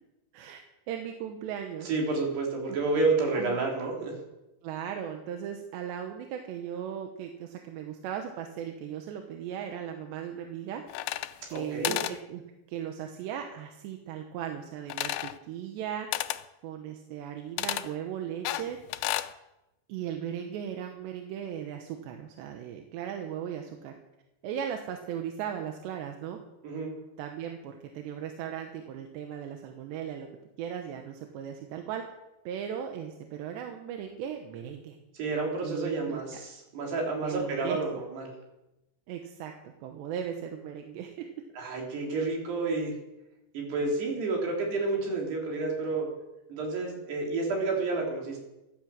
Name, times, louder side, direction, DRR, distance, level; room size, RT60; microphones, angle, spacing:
voice 1, 0.9-1.9 3.3-3.6 4.6-10.8 11.5-12.4 12.7-16.1 16.6-18.8 19.9-23.9 24.4-26.4 27.2-30.3 30.6-32.0 32.5-35.0 35.6-36.2 37.2-38.0 39.1-39.5 39.8-41.3 42.1-42.2, right 9 dB, 90° right, 4 dB, 3.3 m, -37 dB
voice 2, 1.8-4.2 11.5-12.0 26.6-26.9 35.1-38.3 41.6-42.9 43.5-46.1 46.5-48.4, right 3 dB, 75° right, 0 dB, 5.4 m, -30 dB
sound 1, 10.9-11.6 11.8-12.2 14.9-15.4 16.1-16.4 17.6-17.9 18.5-19.3, left 15 dB, 80° left, 2.3 m, -32 dB
15.0 x 11.5 x 7.5 m, 0.97 s
omnidirectional pair, 4.9 m